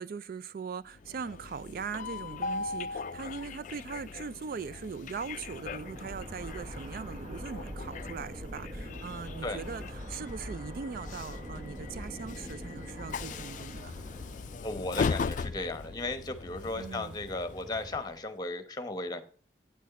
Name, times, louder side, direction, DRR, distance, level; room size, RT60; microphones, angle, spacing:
voice 1, 0.0-14.0 16.8-17.2, right 5 dB, 55° right, 0.3 m, -40 dB
Train, 0.9-18.2, left 5 dB, 45° left, 0.3 m, -39 dB
sound 1, 1.0-18.0, equal, 10° right, 2.3 m, -54 dB
sound 2, 5.1-15.0, equal, 35° right, 0.9 m, -43 dB
voice 2, 14.6-19.2, left 2 dB, 25° left, 1.0 m, -35 dB
9.3 x 6.4 x 4.1 m
head